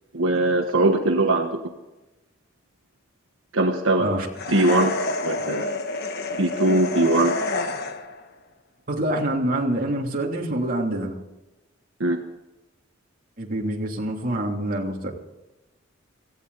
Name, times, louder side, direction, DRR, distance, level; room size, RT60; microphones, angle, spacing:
voice 1, 0.1-1.6 3.5-4.1 4.5-5.7 6.4-7.4 12.0-12.2, right 2 dB, 75° right, 3 dB, 1.4 m, -21 dB
sound 1, 4.3-8.2, left 3 dB, 55° left, 1.4 m, -28 dB
voice 2, 8.9-11.2 13.4-15.1, right 1 dB, 45° right, 0 dB, 3.0 m, -26 dB
18.0 x 16.0 x 4.1 m, 1.0 s
head